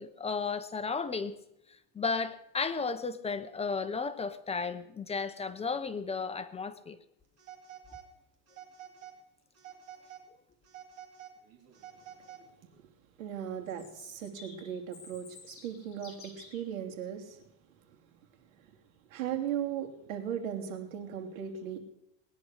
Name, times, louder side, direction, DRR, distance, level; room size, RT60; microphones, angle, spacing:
voice 1, 0.0-1.4 1.9-7.0, left 4 dB, 15° left, 9 dB, 0.9 m, -34 dB
Telephone, 7.4-8.1 8.5-9.2 9.5-10.3 10.6-12.7, right 10 dB, 40° right, 3.4 m, -50 dB
voice 2, 13.2-17.4 19.1-21.8, right 9 dB, 90° right, 4 dB, 2.9 m, -37 dB
Chirp tweet, 13.7-16.6, left 4 dB, 35° left, 7.6 m, -52 dB
19.5 x 10.5 x 6.6 m, 0.79 s
supercardioid pair, 135°, 39 cm